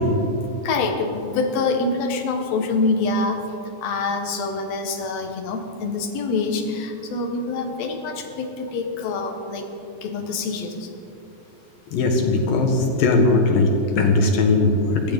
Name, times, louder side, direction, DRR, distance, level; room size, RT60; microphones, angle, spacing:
voice 1, 0.6-3.5 3.8-9.7 10.0-10.9, left 3 dB, 60° left, 3 dB, 2.3 m, -25 dB
voice 2, 11.9-15.1, left 3 dB, 80° left, 1 dB, 3.3 m, -19 dB
21.5 x 15.0 x 3.7 m, 2.7 s
omnidirectional pair, 3.9 m